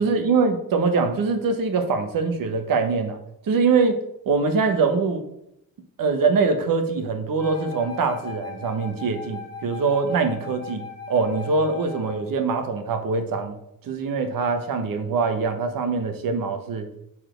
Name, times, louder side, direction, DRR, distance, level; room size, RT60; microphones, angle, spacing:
voice 1, 0.0-3.2 3.4-4.0 4.3-5.2 6.0-13.6 13.8-16.9, right 4 dB, 70° right, 7 dB, 1.1 m, -23 dB
Wind instrument woodwind instrument, 7.4-12.3, left 6 dB, 45° left, 1.6 m, -39 dB
6.8 x 4.2 x 5.1 m, 0.78 s
wide cardioid pair, 140°, 35 cm